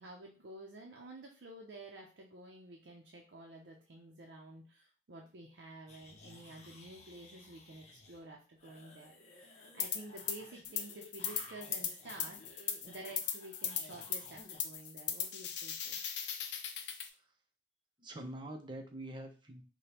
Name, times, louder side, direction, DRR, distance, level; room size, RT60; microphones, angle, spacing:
voice 1, 0.0-16.0, right 2 dB, 70° right, -1 dB, 0.6 m, -51 dB
sound 1, 5.9-8.3 8.6-14.6, left 2 dB, 40° left, 0.7 m, -56 dB
sound 2, 9.8-10.4 10.6-17.1, left 8 dB, 70° left, 0.5 m, -38 dB
voice 2, 18.0-19.6, right 1 dB, 25° right, 3 dB, 0.7 m, -45 dB
5.0 x 2.2 x 2.9 m, 0.34 s
head